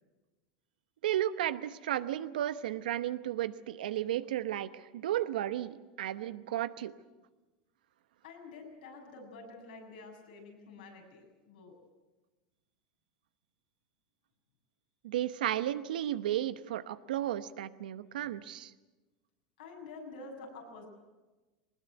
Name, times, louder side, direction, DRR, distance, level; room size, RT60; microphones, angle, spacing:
voice 1, 1.0-6.9 15.0-18.7, right 12 dB, 90° right, 14 dB, 1.0 m, -33 dB
voice 2, 8.2-11.7 19.6-20.9, left 3 dB, 90° left, 0 dB, 7.0 m, -48 dB
20.0 x 20.0 x 9.3 m, 1.2 s
supercardioid pair, 110°, 5 cm